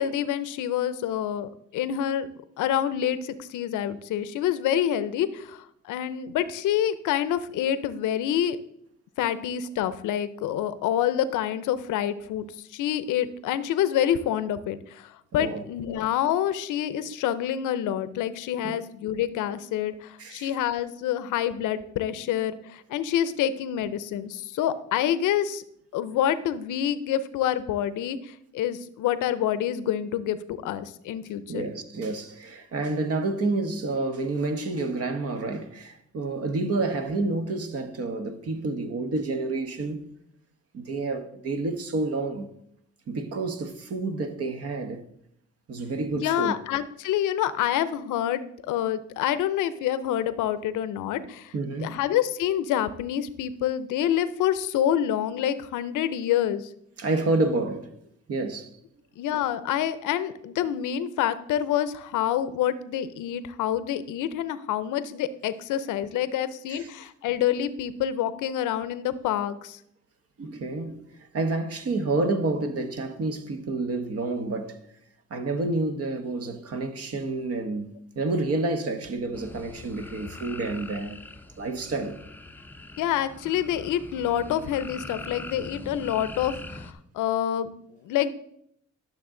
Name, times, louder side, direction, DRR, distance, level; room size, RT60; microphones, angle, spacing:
voice 1, 0.0-2.3 2.6-8.6 9.2-25.6 25.9-31.7 46.2-51.5 51.8-56.7 59.2-69.8 83.0-88.3, left 10 dB, 85° left, 0.7 m, -27 dB
voice 2, 15.3-15.6 18.6-18.7 20.2-20.5 31.5-40.0 40.7-42.5 43.1-45.0 45.7-46.5 51.5-52.0 57.0-57.9 58.3-58.7 66.7-66.9 70.4-74.8 75.3-81.2 81.6-82.2, right 3 dB, 50° right, 1.2 m, -29 dB
sound 1, 79.3-86.9, left 2 dB, 5° left, 0.6 m, -42 dB
11.5 x 6.6 x 3.8 m
cardioid pair, 90°, 30 cm